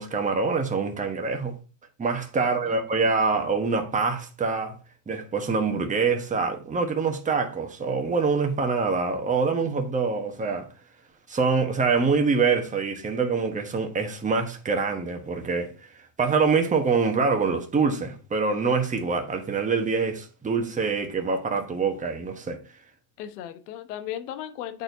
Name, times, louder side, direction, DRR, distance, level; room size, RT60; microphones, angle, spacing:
voice 1, 0.0-1.6 2.0-4.8 5.1-10.7 11.3-15.7 16.2-22.6, right 4 dB, 15° right, 1.1 m, -25 dB
voice 2, 2.4-3.0 23.2-24.8, left 11 dB, 85° left, 1.0 m, -37 dB
8.8 x 4.3 x 2.7 m
supercardioid pair, 115°, 46 cm